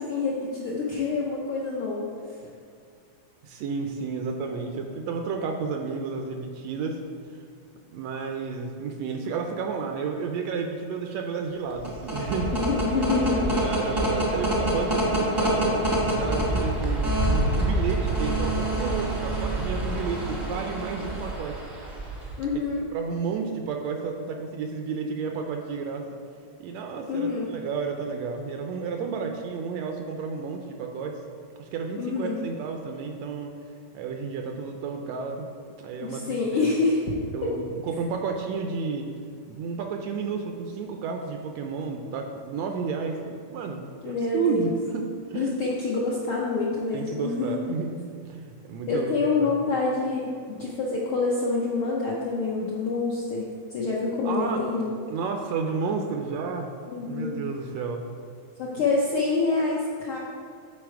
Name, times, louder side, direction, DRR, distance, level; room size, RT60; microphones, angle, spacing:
voice 1, 0.0-2.1 12.5-13.6 22.4-22.8 27.1-27.5 32.0-32.4 36.0-37.1 37.4-37.5 44.0-44.7 45.3-47.6 48.9-54.9 56.9-57.4 58.6-60.2, left 3 dB, 75° left, -5 dB, 1.2 m, -27 dB
voice 2, 3.4-7.0 7.9-12.5 13.3-15.8 16.2-21.6 22.9-26.0 26.6-31.2 31.6-33.5 33.9-35.5 35.8-36.7 37.3-39.1 39.5-43.8 44.0-45.0 45.3-45.5 46.9-49.1 49.4-49.6 54.2-56.7 57.0-58.0, right 5 dB, 75° right, 3 dB, 1.6 m, -31 dB
sound 1, 11.7-22.5, right 1 dB, 20° right, 0.5 m, -26 dB
9.6 x 4.2 x 4.7 m, 2.2 s
omnidirectional pair, 3.3 m